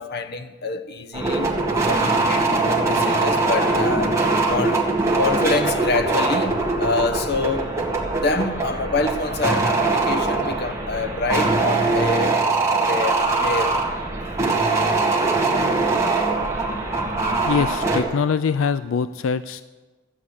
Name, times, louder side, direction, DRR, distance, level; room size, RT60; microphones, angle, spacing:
voice 1, 0.0-4.9 5.1-7.7 8.1-12.4 12.9-13.8, left 3 dB, 55° left, 0.9 m, -26 dB
sound 1, 1.1-18.0, right 3 dB, 15° right, 1.7 m, -22 dB
voice 2, 17.5-19.6, left 6 dB, 90° left, 0.4 m, -23 dB
13.5 x 8.6 x 8.2 m
head